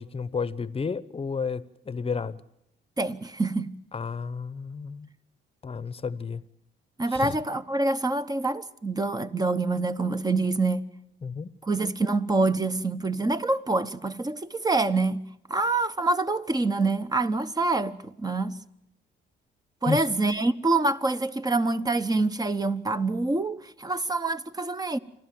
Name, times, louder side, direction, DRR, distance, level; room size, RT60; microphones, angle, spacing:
voice 1, 0.0-2.4 3.9-5.1 5.6-6.4 7.1-7.4 11.2-11.5 19.9-20.0, left 5 dB, 30° left, 0.9 m, -31 dB
voice 2, 3.0-3.7 7.0-10.8 11.6-15.2 15.5-18.6 19.8-25.0, right 3 dB, 20° right, 1.0 m, -26 dB
28.5 x 12.0 x 9.3 m
cardioid pair, 90°, 20 cm